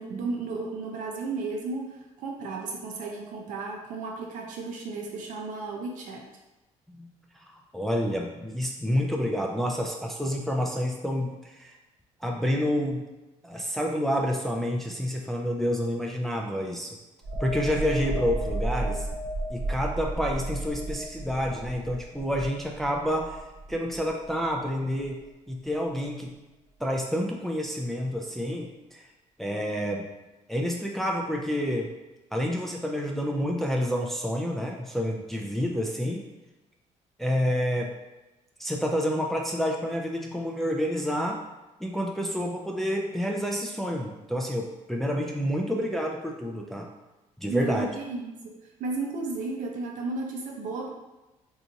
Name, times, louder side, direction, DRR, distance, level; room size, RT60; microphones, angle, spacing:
voice 1, 0.0-6.3 47.5-50.9, right 3 dB, 70° right, 1 dB, 0.7 m, -34 dB
voice 2, 7.7-11.8 12.2-13.0 13.4-17.0 17.4-19.1 19.5-23.4 23.7-25.2 25.5-26.3 26.8-29.1 29.4-30.1 30.5-31.9 32.3-36.2 37.2-37.9 38.6-41.4 41.8-46.9 47.4-47.9, equal, ahead, 0 dB, 0.3 m, -28 dB
sound 1, 17.2-24.7 25.0-25.2, right 1 dB, 45° right, 1.0 m, -33 dB
2.8 x 2.4 x 3.9 m, 1.1 s
cardioid pair, 130°, 13 cm